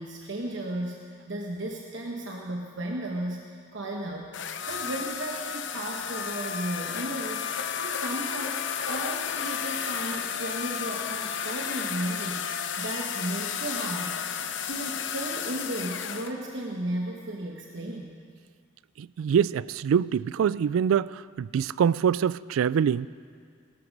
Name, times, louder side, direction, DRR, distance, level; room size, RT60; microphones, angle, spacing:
voice 1, 0.0-14.2 14.6-18.1, right 1 dB, 60° right, 0 dB, 1.1 m, -35 dB
sound 1, 4.3-16.3, left 7 dB, 60° left, 0.7 m, -32 dB
voice 2, 19.0-23.1, right 7 dB, 90° right, 19 dB, 0.3 m, -25 dB
18.0 x 13.0 x 5.2 m, 2.1 s
head